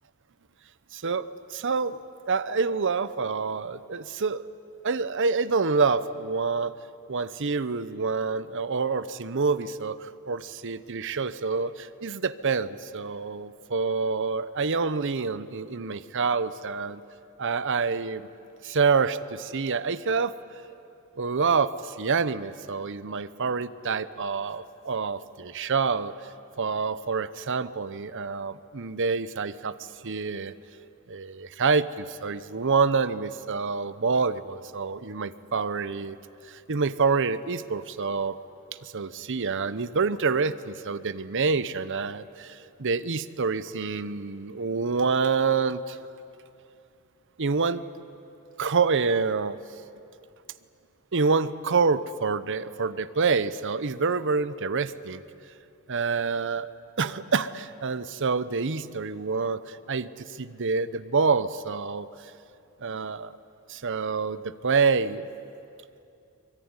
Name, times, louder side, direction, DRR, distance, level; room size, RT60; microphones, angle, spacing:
voice 1, 0.9-2.0 2.3-4.5 4.8-6.7 7.1-17.0 17.4-18.3 18.6-20.4 21.2-26.1 26.6-29.7 30.0-30.5 31.1-36.2 36.5-38.4 38.8-46.0 47.4-47.8 48.6-49.6 51.1-55.2 55.9-56.7 57.0-62.1 62.8-63.3 63.7-65.3, right 4 dB, 55° right, 14 dB, 0.8 m, -27 dB
24.0 x 22.0 x 9.7 m, 2.6 s
head